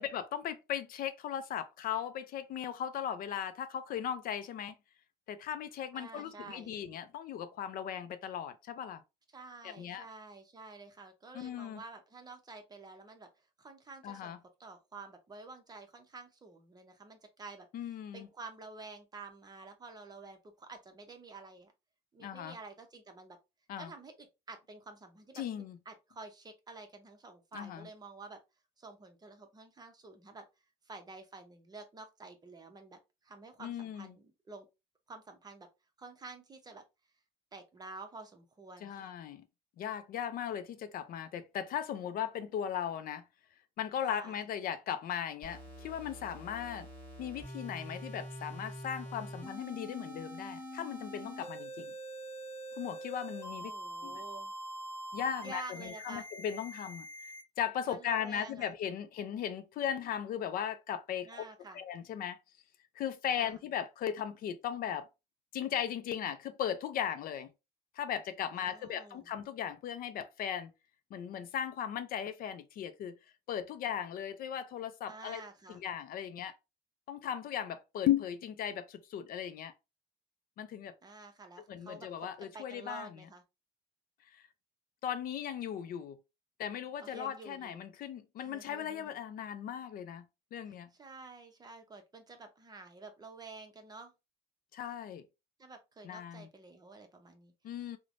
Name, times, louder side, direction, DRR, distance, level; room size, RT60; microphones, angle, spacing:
voice 1, 0.0-4.7 5.3-9.0 9.6-10.1 11.3-11.8 14.0-14.4 17.7-18.3 22.2-22.6 23.7-23.9 25.4-25.8 27.5-27.9 33.6-34.1 38.8-39.4 39.8-43.2 43.8-46.9 47.2-51.9 52.8-53.7 54.0-54.2 55.1-57.3 57.6-61.4 61.7-62.4 63.0-65.1 65.5-67.5 68.0-70.7 71.1-73.1 73.5-75.4 75.7-76.5 77.1-79.7 80.6-80.9 81.7-83.1 84.3-84.4 85.0-86.2 86.6-90.2 90.5-90.9 94.7-95.2 96.0-96.5 97.6-98.0, left 9 dB, 60° left, 0.4 m, -37 dB
voice 2, 5.9-6.8 9.3-13.3 13.6-17.7 18.1-21.7 22.1-23.4 23.8-25.4 25.9-28.4 28.8-30.5 30.9-34.7 35.1-35.7 36.0-36.8 37.5-39.1 44.1-44.4 53.6-54.5 55.4-56.3 57.9-58.7 61.2-61.8 63.4-63.6 68.5-69.3 75.1-75.8 81.0-83.4 87.0-87.8 88.4-89.1 90.7-94.1 95.6-97.5 97.8-98.0, right 3 dB, 25° right, 0.7 m, -50 dB
sound 1, 45.4-57.4, right 1 dB, 15° left, 1.2 m, -45 dB
3.2 x 2.1 x 2.5 m
cardioid pair, 110°, 17 cm